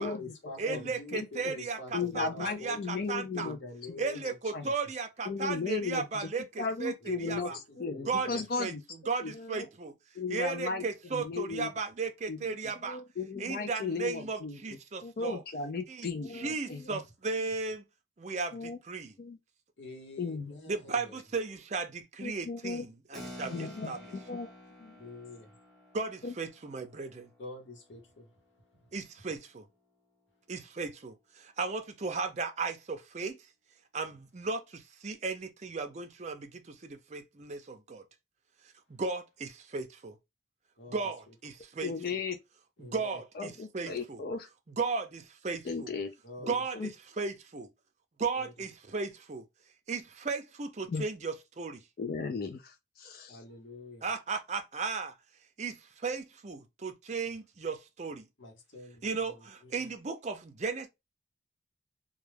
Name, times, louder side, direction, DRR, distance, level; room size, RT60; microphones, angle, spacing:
voice 1, 0.0-2.8 3.3-4.3 4.6-4.8 7.0-8.4 19.8-21.2 25.0-25.5 27.4-28.3 40.8-41.0 41.3-41.4 42.8-43.2 46.2-46.5 48.4-48.5 53.3-54.0 58.4-59.7, left 3 dB, 90° left, 0.9 m, -46 dB
voice 2, 0.6-3.5 4.0-7.6 8.1-8.7 9.1-9.9 10.3-13.0 13.4-15.4 15.9-17.8 18.2-19.1 20.7-24.1 25.9-27.3 28.9-29.6 30.5-33.4 33.9-38.0 38.9-40.2 40.9-42.2 42.8-44.2 44.7-45.9 46.4-47.7 48.2-49.4 49.9-51.8 54.0-55.2 55.6-58.3 59.0-60.9, right 4 dB, 40° right, 0.5 m, -36 dB
voice 3, 1.9-3.6 3.9-4.0 4.5-4.6 5.3-6.3 6.6-7.5 7.8-8.8 9.2-9.7 10.2-10.9 11.1-11.7 12.3-12.4 12.6-14.6 15.0-17.0 18.5-18.8 19.2-19.4 20.2-20.5 22.2-22.8 23.5-24.5 24.8-25.0 26.2-26.3 41.8-42.4 43.4-44.5 45.6-46.1 46.4-46.9 50.9-51.0 52.0-53.4, left 4 dB, 55° left, 0.4 m, -36 dB
Keyboard (musical), 23.1-29.2, left 1 dB, ahead, 0.6 m, -51 dB
2.2 x 2.2 x 3.2 m
head